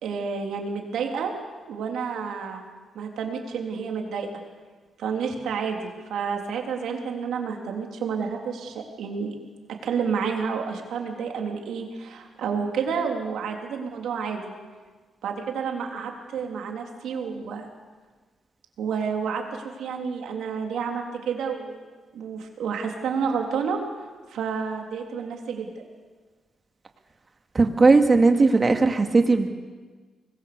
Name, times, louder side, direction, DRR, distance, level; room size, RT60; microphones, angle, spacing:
voice 1, 0.0-1.3 1.7-2.6 2.9-4.3 5.0-9.3 9.8-14.5 15.2-17.7 18.8-21.9 22.1-23.8 24.3-25.9, right 6 dB, 85° right, 2 dB, 3.4 m, -30 dB
voice 2, 27.5-29.5, right 3 dB, 35° right, 5 dB, 2.2 m, -18 dB
25.0 x 20.5 x 6.9 m, 1.4 s
cardioid pair, 85°, 0 cm